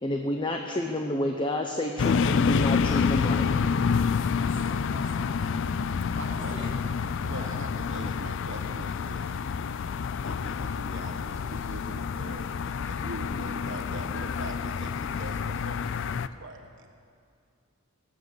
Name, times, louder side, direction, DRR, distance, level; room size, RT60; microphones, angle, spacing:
voice 1, 0.0-3.5, left 1 dB, 25° left, 3 dB, 0.7 m, -29 dB
sound 1, 2.0-16.3, left 6 dB, 60° left, 0.4 m, -28 dB
voice 2, 4.4-5.5 6.3-6.8 7.4-7.5, right 1 dB, 25° right, -1 dB, 2.1 m, -45 dB
voice 3, 5.7-6.6 7.2-9.4 10.2-16.9, right 2 dB, 60° right, 5 dB, 1.4 m, -43 dB
18.0 x 7.6 x 8.2 m, 2.3 s
head